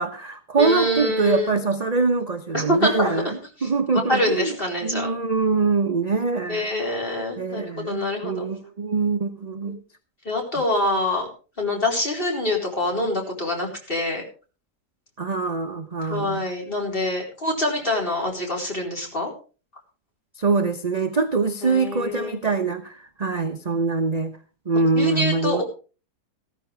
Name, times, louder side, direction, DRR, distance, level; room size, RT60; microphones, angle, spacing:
voice 1, 0.0-3.3 3.6-4.5 4.8-6.6 7.4-9.8 15.2-16.4 20.4-24.3 24.7-25.6, right 4 dB, 30° right, 6 dB, 0.8 m, -24 dB
voice 2, 0.6-1.6 2.5-3.1 3.6-5.1 6.5-8.4 9.7-9.8 10.2-11.3 11.6-14.2 16.0-19.3 21.6-22.4 24.9-25.6, left 1 dB, 30° left, 0 dB, 4.4 m, -25 dB
15.0 x 14.0 x 3.4 m, 0.35 s
omnidirectional pair, 1.8 m